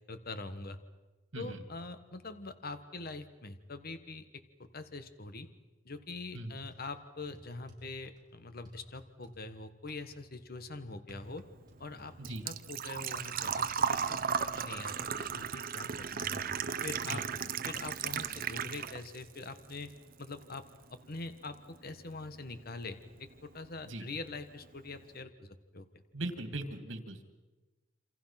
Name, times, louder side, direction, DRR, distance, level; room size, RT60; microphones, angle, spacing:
voice 1, 0.1-0.8 1.4-5.5 5.8-11.4 11.8-16.4 16.8-19.9 20.2-20.6 20.9-26.0, left 3 dB, 50° left, 10 dB, 1.5 m, -44 dB
sound 1, 6.3-6.9 7.3-8.2 8.7-9.4 9.9-10.0 11.1-12.8 13.2-13.3, equal, 20° right, 6.4 m, -56 dB
Engine / Trickle dribble / Fill (with liquid), 11.3-19.2 19.6-20.5 20.8-20.9 22.8-22.9 23.1-23.5 23.8-23.9 24.2-24.3, right 7 dB, 50° right, 0.9 m, -35 dB
voice 2, 26.1-27.2, right 1 dB, 75° right, 8 dB, 2.7 m, -39 dB
28.5 x 26.0 x 5.9 m, 1.2 s
head